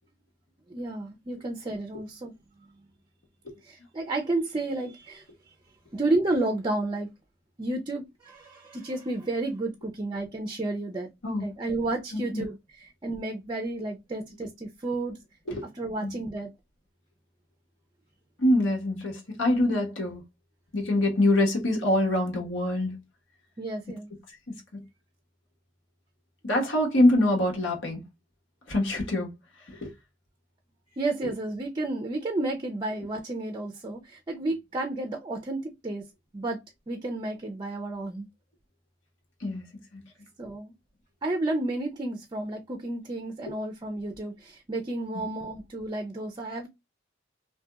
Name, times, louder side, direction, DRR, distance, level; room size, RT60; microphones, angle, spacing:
voice 1, 0.7-2.3 3.6-5.2 5.9-7.1 7.6-11.1 11.4-15.2 15.8-16.5 23.6-24.1 30.9-36.0 36.3-38.3 40.4-40.7 41.2-46.7, right 2 dB, 25° right, 0.4 m, -31 dB
voice 2, 12.1-12.5 15.5-15.7 16.0-16.1 18.4-20.2 20.7-23.0 24.5-24.8 26.4-28.0 28.7-29.3 29.7-29.9 39.4-39.6 39.9-40.0 45.1-45.3, left 1 dB, 85° left, 1.2 m, -25 dB
2.8 x 2.6 x 2.3 m
head